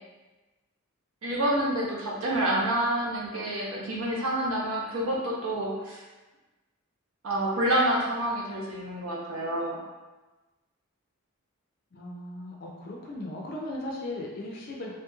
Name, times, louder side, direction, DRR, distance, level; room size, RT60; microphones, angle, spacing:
voice 1, 1.2-6.0 7.2-9.8, right 1 dB, 80° right, -4 dB, 0.8 m, -28 dB
voice 2, 11.9-14.9, left 1 dB, 45° left, -1 dB, 0.4 m, -37 dB
2.9 x 2.7 x 2.3 m, 1.2 s
head